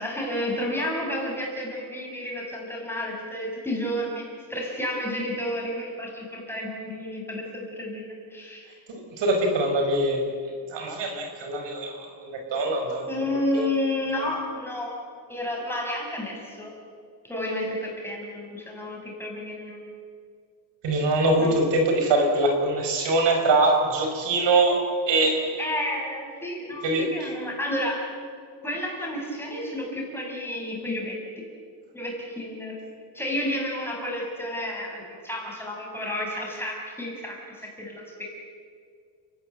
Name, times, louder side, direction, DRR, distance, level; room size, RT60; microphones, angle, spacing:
voice 1, 0.0-8.7 13.1-14.9 15.3-16.7 17.2-19.8 21.4-21.5 25.6-28.0 28.6-31.5 31.9-32.8 33.1-38.2, left 1 dB, 5° left, -2 dB, 6.5 m, -31 dB
voice 2, 8.9-10.3 10.7-13.7 14.1-14.2 20.8-25.5 26.8-27.1, right 2 dB, 70° right, 3 dB, 5.4 m, -23 dB
30.0 x 18.5 x 7.9 m, 2.1 s
cardioid pair, 145°, 45 cm